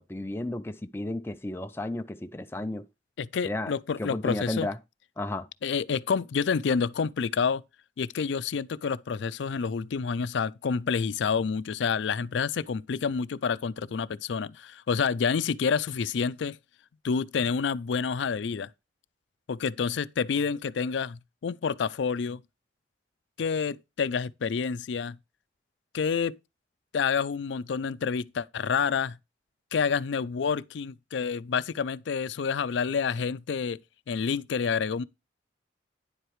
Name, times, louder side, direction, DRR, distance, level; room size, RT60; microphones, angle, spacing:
voice 1, 0.0-2.9 3.4-3.7 4.0-4.8 5.2-5.5, left 1 dB, 10° left, 0.4 m, -33 dB
voice 2, 3.2-4.7 5.6-7.6 8.0-16.6 17.0-18.7 19.5-22.4 23.4-25.2 25.9-26.3 26.9-29.2 29.7-33.8 34.1-35.0, left 6 dB, 80° left, 0.4 m, -28 dB
10.0 x 7.9 x 3.1 m
head